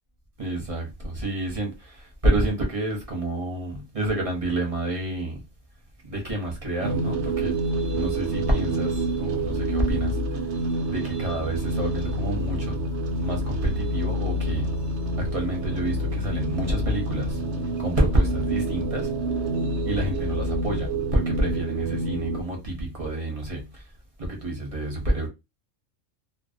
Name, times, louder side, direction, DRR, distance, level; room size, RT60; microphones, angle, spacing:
voice 1, 0.4-5.4 6.0-7.6 7.9-10.5 10.9-12.9 13.2-14.8 15.2-17.4 17.8-19.1 19.8-23.8 24.2-25.3, right 1 dB, 35° right, 0.7 m, -28 dB
sound 1, 6.8-22.4, right 1 dB, 70° right, 0.8 m, -27 dB
2.5 x 2.0 x 2.4 m
omnidirectional pair, 1.4 m